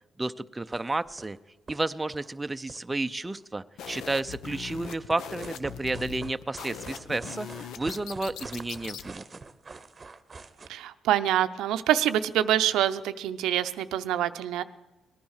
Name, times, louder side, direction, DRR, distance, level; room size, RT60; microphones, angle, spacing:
voice 1, 0.2-1.4 1.7-9.2, right 2 dB, 15° right, 10 dB, 0.5 m, -31 dB
sound 1, 0.6-1.4 1.7-1.8 2.1-3.4 4.6-10.7, right 4 dB, 30° right, 0.9 m, -45 dB
sound 2, 3.8-9.1, left 8 dB, 80° left, 0.8 m, -41 dB
voice 2, 10.7-14.6, right 11 dB, 90° right, 11 dB, 0.6 m, -26 dB
18.5 x 10.5 x 6.4 m, 1.1 s
cardioid pair, 90°, 0 cm